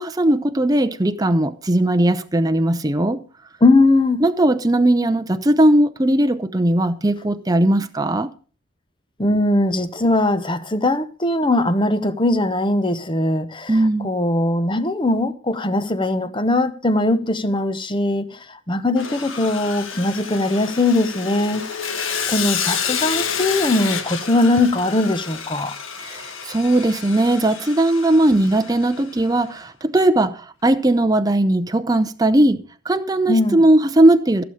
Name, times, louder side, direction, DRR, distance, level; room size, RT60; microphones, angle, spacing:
voice 1, 0.0-3.2 4.2-8.3 13.7-14.1 26.0-34.4, right 1 dB, 20° right, 0.7 m, -18 dB
voice 2, 3.6-4.2 9.2-21.6 22.0-25.7 33.3-33.6, left 2 dB, 25° left, 0.9 m, -20 dB
Sawing, 19.0-29.2, left 7 dB, 75° left, 1.6 m, -29 dB
15.5 x 7.1 x 6.4 m
head